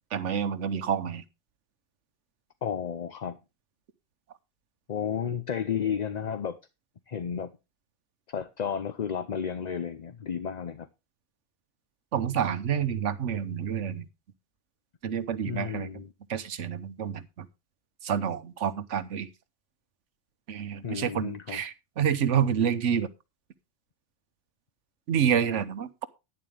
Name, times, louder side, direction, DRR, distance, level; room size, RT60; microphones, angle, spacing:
voice 1, 0.1-1.2 12.1-14.1 15.0-16.0 16.3-17.5 18.0-19.3 20.5-23.1 25.1-26.1, right 8 dB, 80° right, 1.2 m, -28 dB
voice 2, 2.6-3.4 4.9-6.6 7.1-7.5 8.3-10.9 15.5-16.1 20.8-21.6, left 7 dB, 45° left, 0.6 m, -32 dB
11.0 x 10.5 x 3.3 m
omnidirectional pair, 1.2 m